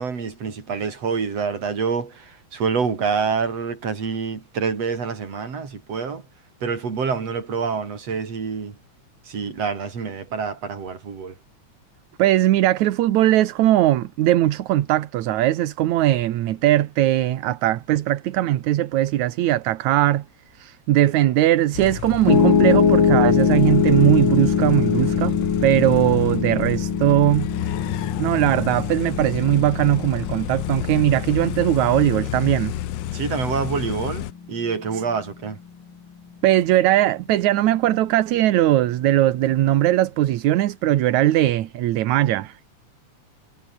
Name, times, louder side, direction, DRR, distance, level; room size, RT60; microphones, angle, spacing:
voice 1, 0.0-6.2 6.6-8.8 9.3-11.3 33.1-35.6, right 5 dB, 60° right, 4.8 m, -27 dB
voice 2, 12.2-20.3 20.5-25.4 25.6-27.5 28.2-32.8 34.9-35.0 36.4-42.7, right 14 dB, 75° right, 2.4 m, -19 dB
sound 1, 21.7-34.3, left 14 dB, 70° left, 1.9 m, -30 dB
Piano, 22.3-34.5, left 6 dB, 45° left, 2.8 m, -22 dB
omnidirectional pair, 3.3 m